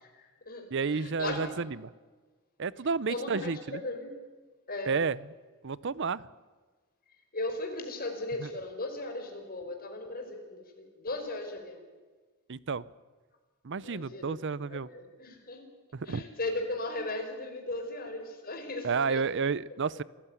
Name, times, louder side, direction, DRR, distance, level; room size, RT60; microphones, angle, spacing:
voice 1, 0.2-1.5 3.1-4.1 4.7-5.0 7.3-11.8 13.8-15.7 16.0-19.2, left 2 dB, 40° left, 4 dB, 5.0 m, -37 dB
voice 2, 0.7-1.9 2.6-3.8 4.9-5.2 5.6-6.3 8.4-8.5 12.5-12.8 13.6-14.9 15.9-16.2 18.8-20.0, right 5 dB, 55° right, 21 dB, 0.6 m, -31 dB
27.0 x 15.0 x 9.7 m, 1.4 s
head